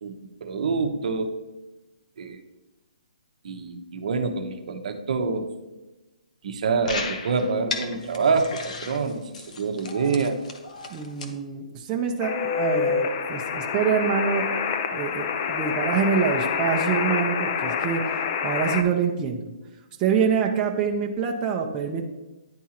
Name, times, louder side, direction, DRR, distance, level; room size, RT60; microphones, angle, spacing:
voice 1, 0.4-1.3 2.2-2.4 3.4-5.5 6.4-9.2 9.6-10.4, right 4 dB, 60° right, 6 dB, 0.8 m, -26 dB
sound 1, 6.9-11.3, left 4 dB, 60° left, 0.9 m, -35 dB
voice 2, 10.9-14.5 14.9-19.4 20.0-22.1, right 6 dB, 20° right, 1 dB, 0.6 m, -25 dB
sound 2, 12.2-18.8, left 6 dB, 40° left, 0.5 m, -27 dB
10.5 x 3.6 x 2.9 m, 1.1 s
hypercardioid pair, 150°, 4 cm